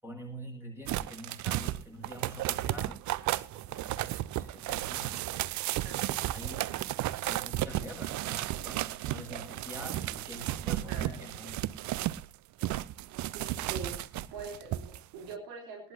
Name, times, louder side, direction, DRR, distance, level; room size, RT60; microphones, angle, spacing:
voice 1, 0.0-3.0 3.5-5.2 6.1-11.6, equal, 5° right, 3 dB, 7.8 m, -46 dB
sound 1, 0.9-12.3 12.6-15.0 15.3-15.4, right 15 dB, 40° right, 0.7 m, -34 dB
voice 2, 5.8-6.2 7.8-7.9 10.8-11.2 13.2-14.0 14.3-15.9, right 4 dB, 60° right, 1 dB, 3.9 m, -43 dB
19.5 x 18.0 x 2.8 m, 0.33 s
figure-of-eight pair, 55°, 44 cm